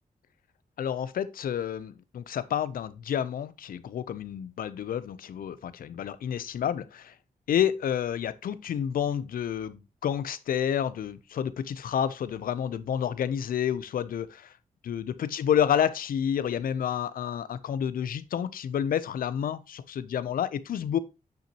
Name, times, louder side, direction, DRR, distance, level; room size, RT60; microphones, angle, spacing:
voice 1, 0.8-7.1 7.5-14.5 14.8-21.0, left 9 dB, 90° left, 0.6 m, -29 dB
9.0 x 5.7 x 2.9 m
wide cardioid pair, 145°, 14 cm